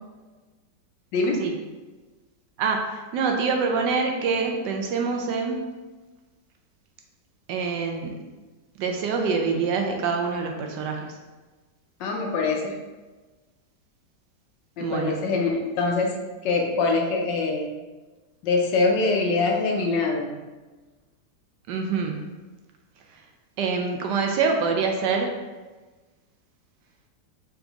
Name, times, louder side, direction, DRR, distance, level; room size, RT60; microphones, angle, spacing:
voice 1, 1.1-1.5 12.0-12.7 14.8-16.1 16.4-17.7 18.4-20.4, left 3 dB, 75° left, 1 dB, 1.3 m, -24 dB
voice 2, 2.6-5.6 7.5-8.2 8.8-11.2 14.8-15.2 21.7-22.4 23.6-25.3, right 5 dB, 75° right, 3 dB, 1.1 m, -25 dB
3.9 x 3.7 x 3.4 m, 1.3 s
omnidirectional pair, 2.0 m